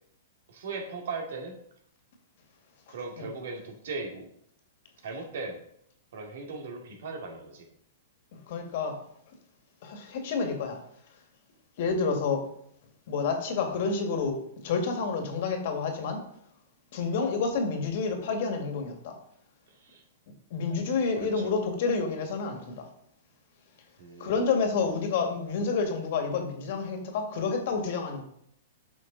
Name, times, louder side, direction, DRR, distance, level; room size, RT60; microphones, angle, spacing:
voice 1, 0.5-1.5 2.9-4.3 5.0-5.6 6.1-7.6 19.8-20.0 21.2-21.4 24.0-24.4, right 4 dB, 70° right, 2 dB, 2.3 m, -38 dB
voice 2, 2.9-3.3 8.5-9.0 9.8-10.8 11.8-12.4 13.1-14.4 14.6-16.2 16.9-19.2 20.5-22.9 24.2-28.2, left 4 dB, 55° left, 4 dB, 2.0 m, -29 dB
8.9 x 6.1 x 4.0 m, 0.70 s
hypercardioid pair, 140°, 0 cm